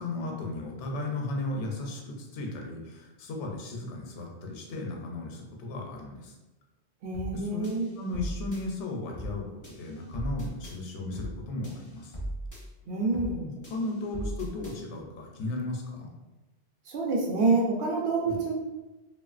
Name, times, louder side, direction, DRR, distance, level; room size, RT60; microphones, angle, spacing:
voice 1, 0.0-6.4 7.3-7.7 8.0-9.5 9.8-12.2 13.7-16.1 18.3-18.4, left 2 dB, 85° left, 0 dB, 0.9 m, -35 dB
voice 2, 7.0-7.9 12.9-13.6 16.9-18.5, right 3 dB, 65° right, -1 dB, 0.8 m, -27 dB
sound 1, 7.1-7.4 7.6-8.6 9.1-9.4 9.6-10.8 11.1-11.4 11.6-12.6 13.1-13.4 13.6-14.8, right 1 dB, 25° left, 0.5 m, -38 dB
3.0 x 2.4 x 2.4 m, 1.1 s
omnidirectional pair, 1.2 m